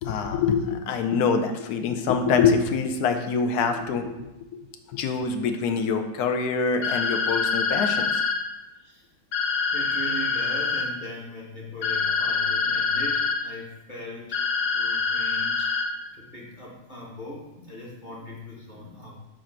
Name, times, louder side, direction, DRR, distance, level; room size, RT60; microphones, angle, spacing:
voice 1, 0.0-4.6 4.9-8.2, left 5 dB, 70° left, 6 dB, 1.1 m, -25 dB
sound 1, 6.8-8.3 9.3-10.8 11.8-13.3 14.3-15.8, left 5 dB, 85° left, 1.4 m, -25 dB
voice 2, 8.7-9.1 9.5-14.4 14.7-15.7 16.1-19.2, equal, 30° left, -3 dB, 1.0 m, -40 dB
7.4 x 2.5 x 5.8 m, 0.97 s
omnidirectional pair, 1.9 m